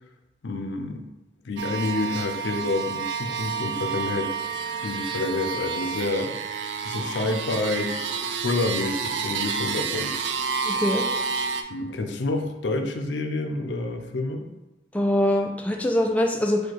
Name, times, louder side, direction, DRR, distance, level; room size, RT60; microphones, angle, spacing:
voice 1, 0.4-1.1 1.4-4.4 4.8-6.4 6.8-10.1 11.7-14.5, left 2 dB, 90° left, 5 dB, 0.5 m, -28 dB
sound 1, 1.6-11.6, right 5 dB, 85° right, 0.4 m, -29 dB
voice 2, 10.7-11.0 14.9-16.6, left 1 dB, 10° left, 1 dB, 0.3 m, -23 dB
4.4 x 2.3 x 4.5 m, 1.0 s
head